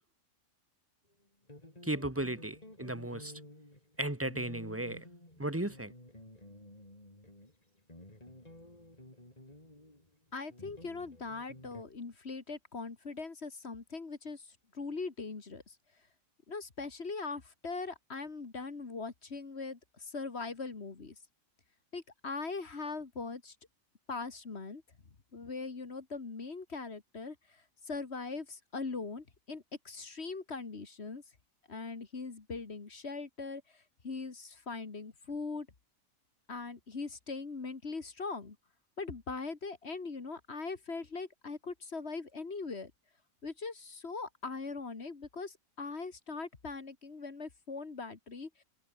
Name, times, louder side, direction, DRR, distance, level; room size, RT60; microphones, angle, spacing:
sound 1, 1.5-11.8, left 1 dB, 30° left, 5.1 m, -52 dB
voice 1, 1.8-3.3 4.0-5.0 5.4-5.9, right 1 dB, 10° right, 1.9 m, -35 dB
voice 2, 10.3-15.8 16.5-21.2 21.9-23.6 24.1-24.8 25.3-31.2 31.7-35.7 36.5-38.6 39.0-42.9 43.4-48.6, left 4 dB, 50° left, 2.2 m, -41 dB
omnidirectional pair, 1.4 m